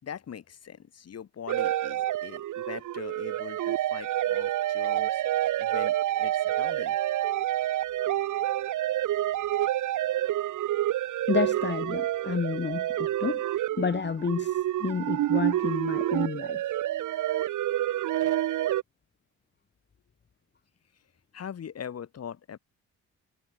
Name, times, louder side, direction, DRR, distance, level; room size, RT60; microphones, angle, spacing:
voice 1, 0.0-5.2 5.6-7.0 21.3-22.6, left 8 dB, 55° left, 5.9 m, -42 dB
sound 1, 1.5-18.8, right 13 dB, 80° right, 4.0 m, -28 dB
voice 2, 11.3-16.6, left 6 dB, 35° left, 2.3 m, -30 dB
cardioid pair, 90°, 30 cm